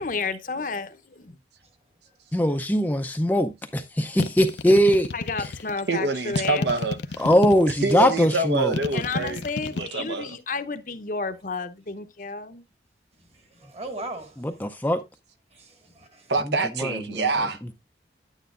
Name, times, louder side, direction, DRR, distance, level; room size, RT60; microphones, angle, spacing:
voice 1, 0.0-1.4 5.1-6.8 8.9-12.7, left 4 dB, 45° left, 0.7 m, -31 dB
voice 2, 2.3-5.1 7.2-8.7 14.4-15.0 16.8-16.9 17.2-17.3, equal, 10° left, 0.4 m, -21 dB
sound 1, 4.2-5.7 6.3-8.1 8.7-9.8, left 3 dB, 80° left, 0.6 m, -30 dB
voice 3, 5.9-7.3 7.7-10.3 16.3-17.7, right 3 dB, 75° right, 0.9 m, -26 dB
voice 4, 13.3-14.4 15.5-16.3, right 2 dB, 35° right, 1.5 m, -39 dB
9.4 x 9.2 x 2.4 m
head